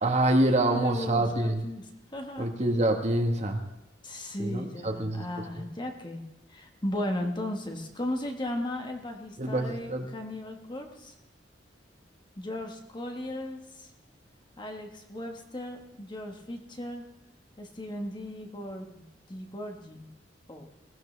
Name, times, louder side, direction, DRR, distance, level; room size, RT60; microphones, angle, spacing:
voice 1, 0.0-1.6 2.4-3.6 4.4-5.2 5.5-5.6 9.4-10.0, right 1 dB, 40° right, 4 dB, 1.5 m, -26 dB
voice 2, 0.7-2.5 4.0-6.2 6.5-11.2 12.4-13.9 14.6-17.0 17.6-19.0 19.3-20.1 20.5-20.7, left 1 dB, 25° left, 3 dB, 1.5 m, -36 dB
20.5 x 16.5 x 3.4 m, 0.86 s
head